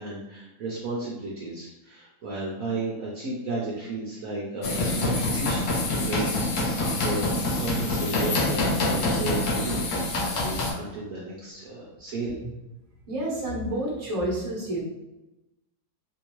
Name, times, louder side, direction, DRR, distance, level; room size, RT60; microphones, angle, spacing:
voice 1, 0.0-9.8 10.2-12.4, right 3 dB, 65° right, -5 dB, 1.0 m, -33 dB
sound 1, 4.6-10.7, left 2 dB, 70° left, 1.3 m, -26 dB
voice 2, 13.1-14.8, right 1 dB, 25° right, -6 dB, 1.0 m, -29 dB
3.7 x 2.7 x 3.0 m, 0.99 s
omnidirectional pair, 1.8 m